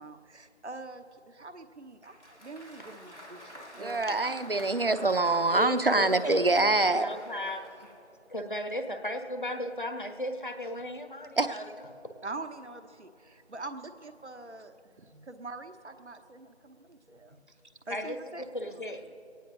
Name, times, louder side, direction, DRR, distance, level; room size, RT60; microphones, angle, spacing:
voice 1, 0.0-4.2 12.2-17.5 17.9-18.8, right 3 dB, 80° right, 8 dB, 1.1 m, -44 dB
Applause, 2.0-8.0, equal, 90° left, 2.7 m, -48 dB
voice 2, 3.8-7.1 11.4-11.6 15.1-15.3, right 2 dB, 55° right, 12 dB, 0.8 m, -25 dB
voice 3, 5.5-7.6 8.3-11.7 17.9-19.0, left 1 dB, 50° left, 7 dB, 1.3 m, -36 dB
21.5 x 18.5 x 3.1 m, 2.9 s
figure-of-eight pair, 170°, 34 cm